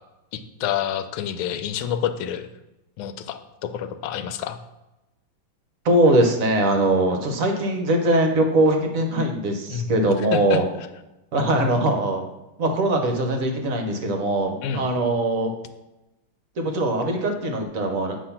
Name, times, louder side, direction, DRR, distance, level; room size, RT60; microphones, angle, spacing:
voice 1, 0.3-2.5 3.0-4.6 9.7-9.8 10.3-10.6 14.6-14.9, left 9 dB, 85° left, 10 dB, 1.4 m, -28 dB
voice 2, 5.8-10.6 11.3-12.2 12.6-15.5 16.6-18.2, right 1 dB, 55° right, 4 dB, 1.0 m, -21 dB
8.3 x 2.9 x 5.6 m, 0.97 s
omnidirectional pair, 2.2 m